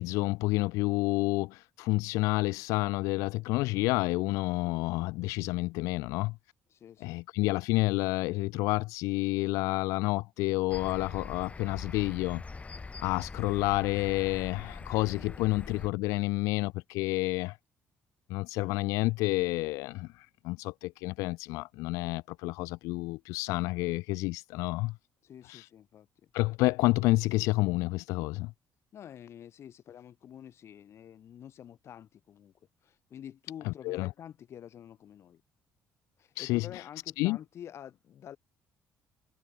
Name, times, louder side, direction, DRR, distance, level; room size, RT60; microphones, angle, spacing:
voice 1, 0.0-6.4 7.0-12.4 13.0-17.6 18.3-24.9 25.5-25.7 26.3-28.5 33.6-34.1 36.4-36.8 37.2-37.4, left 22 dB, 90° left, 0.4 m, -29 dB
voice 2, 6.7-7.2 25.2-26.3 28.9-32.5 32.8-35.4 36.2-38.4, left 9 dB, 55° left, 2.1 m, -48 dB
sound 1, 10.7-15.9, left 4 dB, 25° left, 4.1 m, -43 dB
cardioid pair, 90°, 5 cm